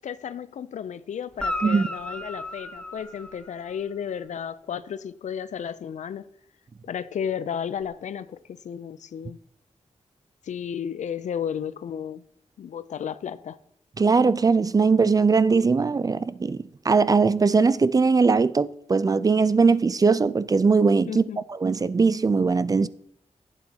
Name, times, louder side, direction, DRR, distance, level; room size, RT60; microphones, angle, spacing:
voice 1, 0.0-6.3 6.8-9.4 10.4-12.2 12.6-13.6 21.1-21.4, left 8 dB, 80° left, 0.4 m, -33 dB
Guitar, 1.3-3.9 7.8-7.9, left 1 dB, 10° left, 0.9 m, -34 dB
voice 2, 14.0-21.2 21.5-22.9, right 4 dB, 30° right, 0.3 m, -20 dB
11.5 x 8.1 x 2.8 m
cardioid pair, 75°, 12 cm